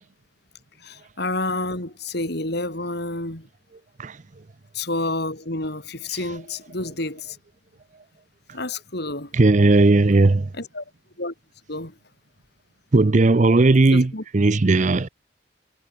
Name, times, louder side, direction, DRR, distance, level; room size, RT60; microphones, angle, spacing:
voice 1, 0.8-3.5 4.7-7.4 8.5-9.3 10.5-10.8 11.2-11.3 11.7-11.9 13.9-14.2, left 2 dB, 55° left, 4.4 m, -29 dB
voice 2, 9.3-10.5 12.9-15.1, right 2 dB, 40° right, 0.6 m, -17 dB
head